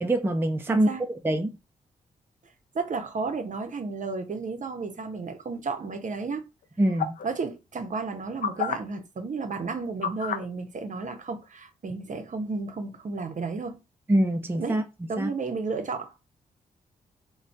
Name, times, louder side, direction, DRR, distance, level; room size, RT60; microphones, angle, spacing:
voice 1, 0.0-0.9 1.2-1.6 6.8-7.2 14.1-14.8 15.2-15.3, right 1 dB, 15° right, 0.5 m, -24 dB
voice 2, 0.7-1.0 2.7-6.4 7.2-13.8 14.5-14.8 15.1-16.2, right 4 dB, 50° right, 0.7 m, -33 dB
sound 1, 7.0-7.3 8.4-8.8 10.0-10.5 11.4-11.5, left 7 dB, 55° left, 0.5 m, -28 dB
2.5 x 2.3 x 3.2 m
supercardioid pair, 40°, 17 cm